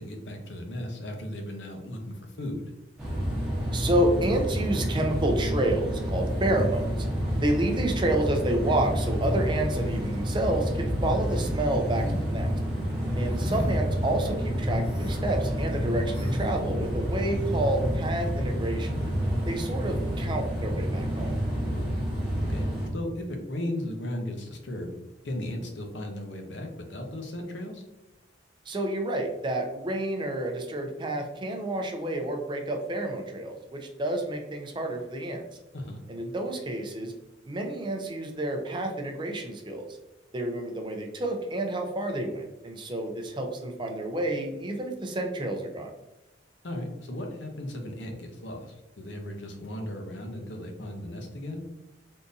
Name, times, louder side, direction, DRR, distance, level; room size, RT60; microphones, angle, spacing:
voice 1, 0.0-2.7 13.4-13.7 21.6-21.9 22.4-24.9 25.2-27.8 35.7-36.0 46.6-51.6, left 1 dB, 65° left, 3 dB, 0.7 m, -36 dB
sound 1, 3.0-22.9, equal, 5° right, 0.9 m, -29 dB
voice 2, 3.7-6.9 7.4-12.5 13.1-18.9 19.5-21.3 28.7-35.4 36.1-37.1 37.5-39.9 40.3-45.9, right 1 dB, 25° right, 3 dB, 0.4 m, -29 dB
sound 2, 8.6-20.3, equal, 75° right, 0.5 m, -43 dB
sound 3, 11.8-12.2 13.3-13.8 14.8-15.2 16.1-16.5, equal, 30° left, 1.0 m, -38 dB
3.6 x 2.6 x 2.6 m, 1.0 s
head